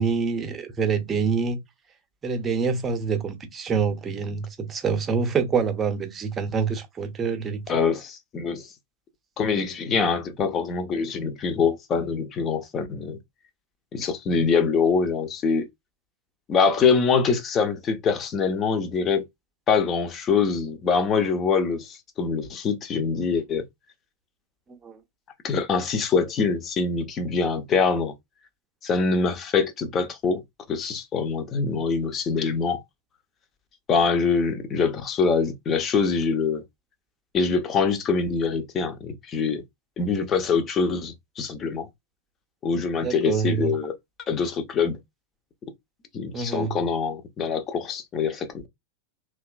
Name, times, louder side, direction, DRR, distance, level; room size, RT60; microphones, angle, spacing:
voice 1, 0.0-1.6 2.2-7.6 24.8-25.0 43.0-43.8 46.3-46.8, right 5 dB, 20° right, 0.7 m, -26 dB
voice 2, 7.7-8.7 9.4-13.2 13.9-15.7 16.5-19.2 19.7-23.6 25.4-28.1 28.8-30.4 30.7-32.8 33.9-36.6 37.3-39.6 40.0-41.9 42.6-43.9 44.3-45.0 46.1-48.7, left 5 dB, 25° left, 0.6 m, -24 dB
2.8 x 2.3 x 2.4 m
figure-of-eight pair, 90°, 0 cm